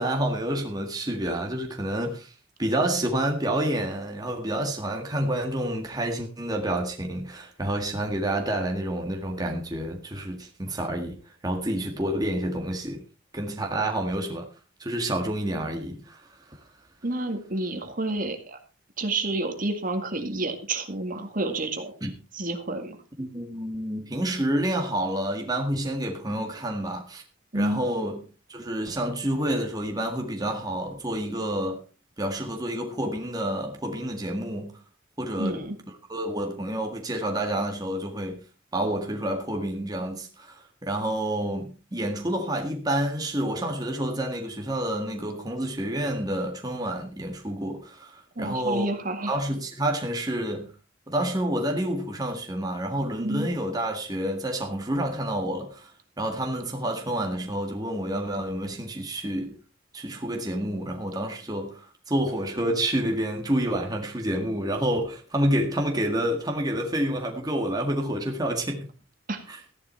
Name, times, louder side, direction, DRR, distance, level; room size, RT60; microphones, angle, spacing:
voice 1, 0.0-2.3 2.6-13.0 13.3-14.5 14.8-16.6 22.0-22.1 23.2-27.2 27.5-28.2 28.5-31.8 32.2-34.8 35.2-35.7 36.1-38.4 38.7-48.9 49.3-50.7 51.1-59.6 59.9-68.9 69.5-69.6, right 1 dB, 20° right, 1.8 m, -29 dB
voice 2, 17.0-18.6 19.0-21.9 22.3-23.0 27.5-27.8 35.3-35.8 48.4-49.3 53.2-53.5 69.3-69.4, right 2 dB, 45° right, 2.0 m, -29 dB
14.5 x 11.0 x 4.4 m
head